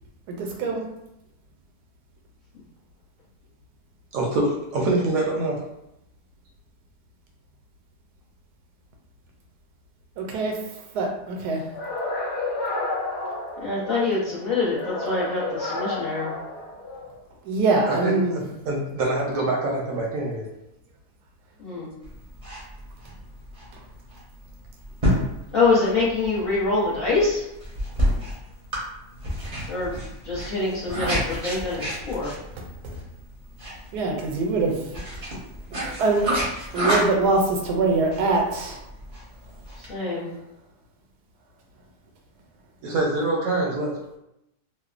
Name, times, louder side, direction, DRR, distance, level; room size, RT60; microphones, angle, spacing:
voice 1, 0.3-0.8 10.2-10.6 10.9-11.6 17.4-18.4 32.6-32.7 33.9-34.8 36.0-36.3 36.7-38.8, right 3 dB, 90° right, 1 dB, 1.1 m, -23 dB
voice 2, 4.1-5.6 17.9-18.2 18.7-20.5 42.8-44.0, right 2 dB, 70° right, -2 dB, 0.8 m, -25 dB
sound 1, 11.7-14.1 14.7-17.1, left 2 dB, 85° left, 1.3 m, -31 dB
voice 3, 13.6-16.3 21.6-21.9 25.5-27.4 29.7-30.0 30.2-32.3 39.9-40.3, left 3 dB, 50° left, -10 dB, 0.7 m, -25 dB
sound 2, 22.0-39.9, equal, 45° right, 0.5 m, -30 dB
3.0 x 2.0 x 2.4 m, 0.86 s
omnidirectional pair, 1.7 m